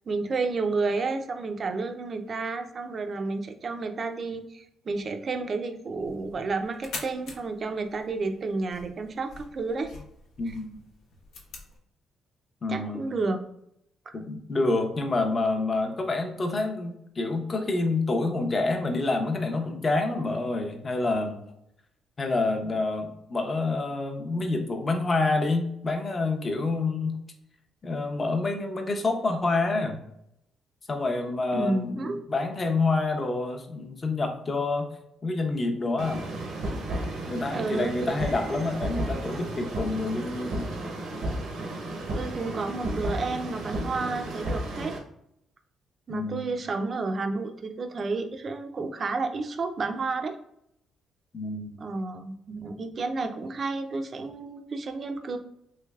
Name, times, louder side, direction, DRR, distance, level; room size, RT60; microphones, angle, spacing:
voice 1, 0.1-9.9 10.5-10.6 12.7-13.4 14.1-14.2 31.5-32.2 37.5-37.9 42.1-45.0 46.1-50.4 51.8-55.4, right 3 dB, 45° right, 6 dB, 0.4 m, -31 dB
sound 1, 6.0-11.8, left 3 dB, 85° left, 0.7 m, -45 dB
voice 2, 10.4-10.7 12.6-13.0 14.1-21.4 22.2-27.2 27.8-30.0 30.9-34.9 35.2-36.3 37.3-40.8 46.1-46.5 51.3-51.7, left 3 dB, 35° left, 4 dB, 0.6 m, -28 dB
sound 2, 36.0-45.0, right 1 dB, 80° right, 0.7 m, -33 dB
3.2 x 3.1 x 2.3 m, 0.77 s
cardioid pair, 90°, 0 cm